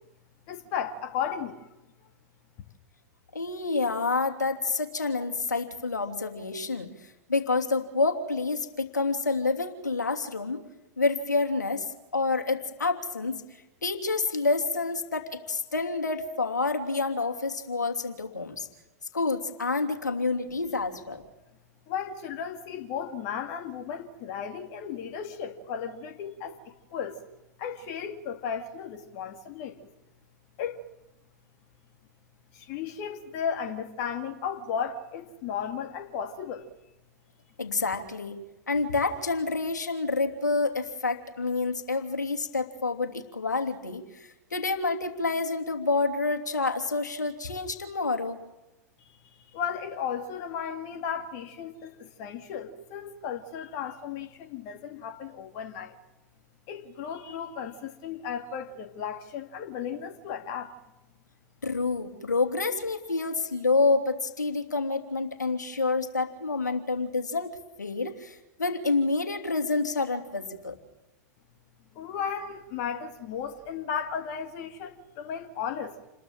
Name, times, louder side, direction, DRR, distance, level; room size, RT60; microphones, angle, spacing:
voice 1, 0.5-1.7 21.9-27.2 27.6-29.9 30.6-30.8 32.5-36.7 49.0-56.0 56.7-60.7 71.9-76.1, left 7 dB, 50° left, 2.4 m, -35 dB
voice 2, 3.3-6.9 7.3-10.6 11.0-11.9 12.1-13.4 13.8-18.7 19.1-21.2 37.6-38.4 38.7-48.4 61.6-67.5 67.8-70.8, left 3 dB, 85° left, 3.0 m, -28 dB
29.0 x 21.5 x 7.5 m
figure-of-eight pair, 95°, 9 cm